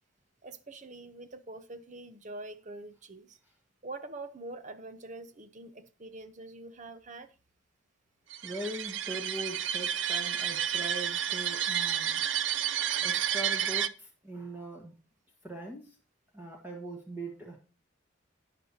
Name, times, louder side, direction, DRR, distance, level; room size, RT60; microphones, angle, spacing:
voice 1, 0.4-3.4 3.8-7.3, right 2 dB, 40° right, 0.8 m, -45 dB
sound 1, 8.3-13.9, right 9 dB, 70° right, 0.5 m, -31 dB
voice 2, 8.4-12.2 13.0-14.9 15.4-15.9 16.3-17.6, right 1 dB, 10° right, 1.7 m, -41 dB
12.0 x 9.2 x 2.9 m
head